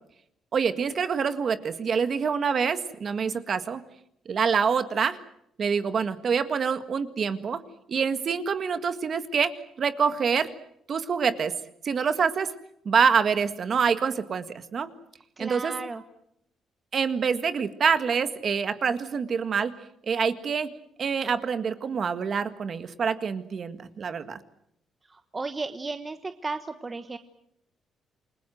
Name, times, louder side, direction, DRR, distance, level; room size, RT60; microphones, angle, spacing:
voice 1, 0.5-3.8 4.3-5.2 5.6-7.6 7.9-10.5 10.9-11.5 11.8-12.5 12.9-14.9 15.4-15.7 16.9-19.7 20.0-20.7 21.0-24.4, right 6 dB, 40° right, 10 dB, 1.8 m, -26 dB
voice 2, 15.4-16.0 25.1-27.2, right 3 dB, 20° right, 9 dB, 1.1 m, -34 dB
28.5 x 21.5 x 7.8 m, 0.75 s
cardioid pair, 140°, 0 cm